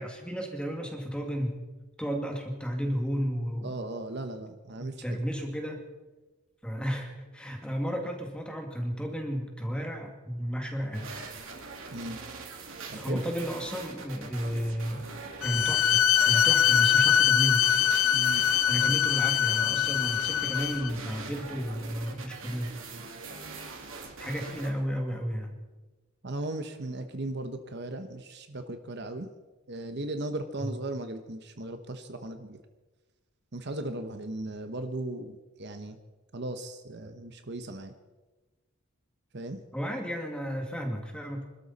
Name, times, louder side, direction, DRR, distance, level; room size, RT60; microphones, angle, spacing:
voice 1, 0.0-1.6 2.0-3.7 4.8-5.9 6.6-11.1 12.9-15.1 15.4-17.6 18.7-22.8 24.2-25.5 30.6-30.8 39.7-41.4, equal, 5° left, 3 dB, 2.1 m, -33 dB
voice 2, 3.6-5.2 11.9-12.2 12.9-13.2 18.1-18.5 26.2-29.3 29.7-32.6 33.5-36.0 36.3-37.9 39.3-39.6, right 2 dB, 50° right, 8 dB, 1.0 m, -37 dB
sound 1, 10.9-24.7, right 4 dB, 65° right, 2.6 m, -43 dB
Bowed string instrument, 15.4-20.9, left 10 dB, 70° left, 0.6 m, -23 dB
26.0 x 13.0 x 4.2 m, 1.2 s
head